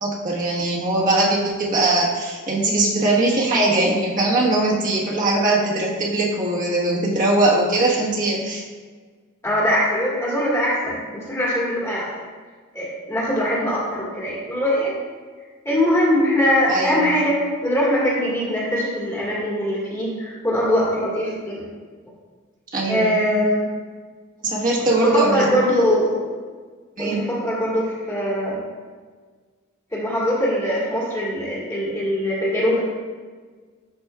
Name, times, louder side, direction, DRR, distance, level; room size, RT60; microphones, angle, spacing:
voice 1, 0.0-8.6 16.7-17.1 22.7-23.1 24.4-25.6 27.0-27.2, right 2 dB, 40° right, -5 dB, 1.4 m, -20 dB
voice 2, 9.4-12.2 12.7-14.9 15.7-21.6 22.9-23.7 25.0-26.2 27.0-28.6 29.9-32.8, equal, 15° left, -7 dB, 1.6 m, -22 dB
11.5 x 4.3 x 2.3 m, 1.5 s
head